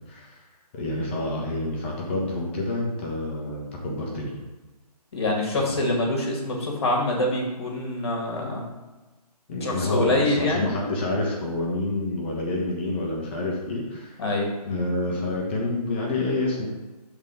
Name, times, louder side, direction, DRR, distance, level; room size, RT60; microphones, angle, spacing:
voice 1, 0.7-4.3 5.6-5.9 9.5-14.2 14.6-16.7, left 2 dB, 15° left, -3 dB, 0.7 m, -28 dB
voice 2, 5.1-8.6 9.6-10.7 14.2-14.5, left 2 dB, 40° left, 0 dB, 1.6 m, -25 dB
6.5 x 3.6 x 5.1 m, 1.2 s
figure-of-eight pair, 145°, 21 cm